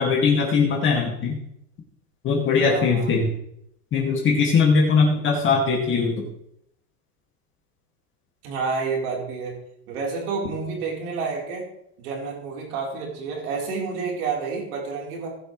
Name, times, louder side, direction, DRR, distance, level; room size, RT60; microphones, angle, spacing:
voice 1, 0.0-1.4 2.2-3.3 3.9-6.3, left 5 dB, 25° left, -1 dB, 2.4 m, -20 dB
voice 2, 2.5-3.2 8.4-9.6 9.9-11.7 12.0-15.3, right 5 dB, 70° right, -1 dB, 4.3 m, -29 dB
19.0 x 6.6 x 3.3 m, 0.75 s
supercardioid pair, 145°, 45 cm